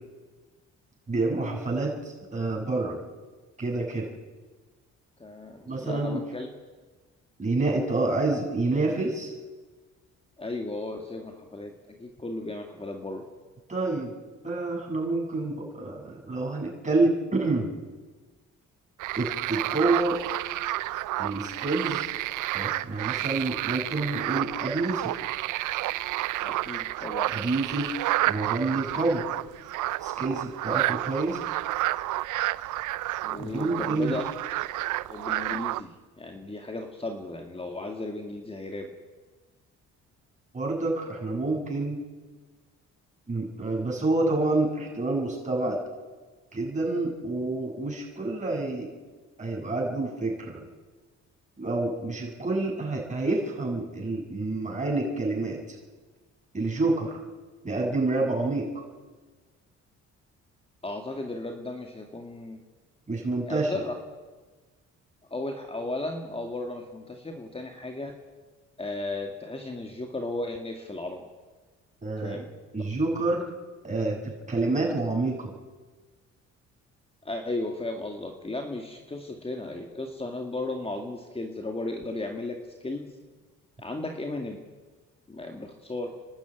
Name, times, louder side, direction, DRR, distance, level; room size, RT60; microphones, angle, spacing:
voice 1, 1.1-3.0 3.6-4.1 5.7-6.2 7.4-9.3 13.7-14.1 14.4-17.7 19.2-20.2 21.2-22.1 22.5-25.1 27.3-27.9 28.2-29.3 30.0-31.4 33.4-34.2 40.5-42.0 43.3-45.8 46.5-48.9 49.4-50.6 51.6-55.8 56.5-57.2 57.6-58.8 63.1-63.8 72.0-72.4 72.7-73.5 73.8-75.5, right 2 dB, 25° right, -1 dB, 7.4 m, -28 dB
voice 2, 5.2-6.5 10.4-13.2 26.4-27.4 33.2-34.3 35.1-38.9 60.8-62.6 63.5-63.9 65.3-68.2 68.8-71.2 72.2-72.5 77.2-83.1 83.8-84.6 85.3-86.1, left 2 dB, 20° left, 3 dB, 2.2 m, -35 dB
sound 1, 19.0-35.8, right 16 dB, 85° right, 0.6 m, -30 dB
27.5 x 12.0 x 9.5 m, 1.3 s
cardioid pair, 90°, 30 cm